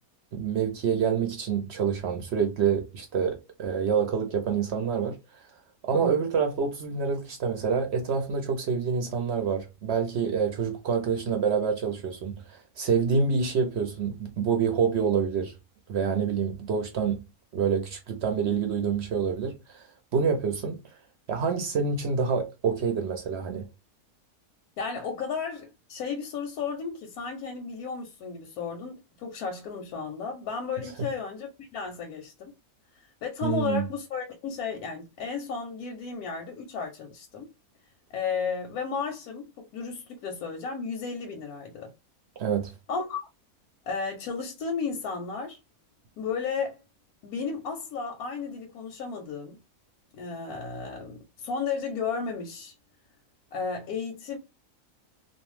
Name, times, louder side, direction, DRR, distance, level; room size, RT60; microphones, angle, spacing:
voice 1, 0.3-5.2 5.8-15.5 15.9-17.2 17.5-19.9 20.1-20.8 21.3-23.7 33.4-33.9 42.4-42.7, right 6 dB, 60° right, 0.7 m, -27 dB
voice 2, 5.9-6.2 24.8-32.5 32.9-37.5 38.1-41.9 42.9-43.3 43.9-45.6 46.2-46.8 47.2-49.6 50.2-52.7 53.5-54.4, left 5 dB, 85° left, 1.1 m, -33 dB
2.6 x 2.1 x 3.1 m
omnidirectional pair, 1.6 m